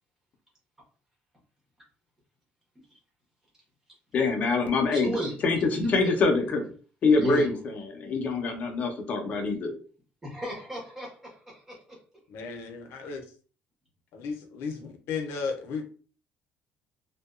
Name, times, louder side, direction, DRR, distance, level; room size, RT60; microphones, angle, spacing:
voice 1, 4.1-5.1 5.4-6.6 7.0-9.7, left 3 dB, 40° left, 4 dB, 0.5 m, -25 dB
voice 2, 4.9-6.1 7.2-7.6 10.2-12.0, equal, 10° right, -4 dB, 1.0 m, -33 dB
voice 3, 12.3-13.2 14.1-15.9, left 5 dB, 85° left, 5 dB, 0.6 m, -34 dB
2.7 x 2.2 x 2.3 m, 0.40 s
cardioid pair, 160°, 4 cm